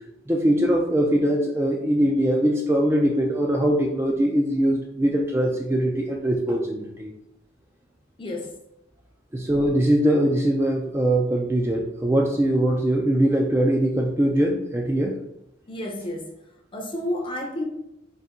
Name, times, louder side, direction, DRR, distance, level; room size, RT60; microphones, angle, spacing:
voice 1, 0.3-7.1 9.3-15.1, right 1 dB, 15° right, 0 dB, 0.3 m, -22 dB
voice 2, 8.2-8.5 15.7-16.3 16.7-17.6, left 1 dB, 25° left, 2 dB, 0.6 m, -30 dB
4.0 x 2.6 x 3.6 m, 0.84 s
head